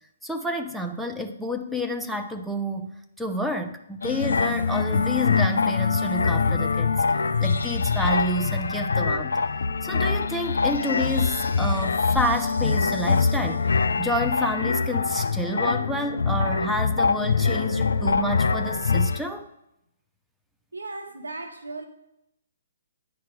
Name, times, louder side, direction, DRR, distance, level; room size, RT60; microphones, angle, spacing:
voice 1, 0.2-2.9 3.2-6.9 7.4-9.4 9.8-13.7 14.0-19.5, equal, ahead, 4 dB, 0.5 m, -29 dB
sound 1, 4.0-19.2, left 4 dB, 75° left, 0.4 m, -24 dB
voice 2, 20.7-21.9, right 2 dB, 85° right, 6 dB, 1.1 m, -36 dB
9.4 x 4.5 x 4.6 m, 0.84 s
figure-of-eight pair, 135°, 0 cm